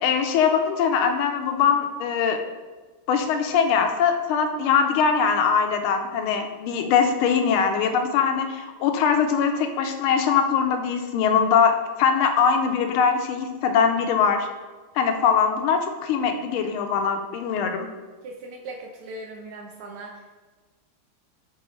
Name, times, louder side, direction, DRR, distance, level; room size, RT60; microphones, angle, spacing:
voice 1, 0.0-2.4 3.1-14.5 14.9-17.9, left 6 dB, 80° left, 5 dB, 1.6 m, -22 dB
voice 2, 18.2-20.1, right 2 dB, 85° right, 0 dB, 1.6 m, -38 dB
11.5 x 3.9 x 3.2 m, 1.3 s
omnidirectional pair, 2.4 m